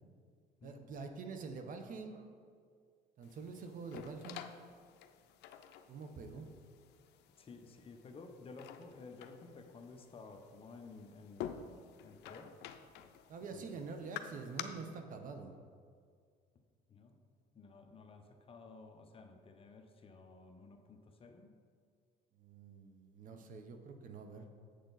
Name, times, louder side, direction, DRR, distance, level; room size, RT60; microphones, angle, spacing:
voice 1, 0.6-2.3 3.2-4.4 5.9-6.5 13.3-15.5 22.3-24.5, right 4 dB, 50° right, 6 dB, 0.8 m, -46 dB
sound 1, 3.2-14.6, left 10 dB, 80° left, 0.5 m, -50 dB
voice 2, 7.4-12.6 13.5-13.6 16.9-17.2 17.5-21.5, left 3 dB, 35° left, 5 dB, 0.8 m, -54 dB
7.9 x 6.5 x 4.0 m, 2.1 s
cardioid pair, 110°, 17 cm